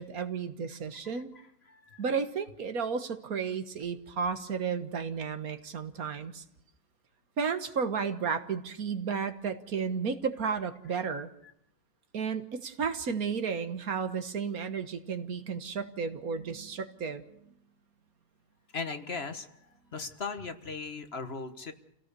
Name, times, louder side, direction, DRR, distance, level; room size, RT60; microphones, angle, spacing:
voice 1, 0.0-1.3 2.0-6.4 7.4-11.3 12.1-17.2, right 6 dB, 85° right, 9 dB, 1.9 m, -33 dB
voice 2, 1.7-2.0 18.7-19.5 19.9-21.7, left 4 dB, 45° left, 8 dB, 1.6 m, -38 dB
28.0 x 17.0 x 6.9 m, 0.76 s
omnidirectional pair, 1.5 m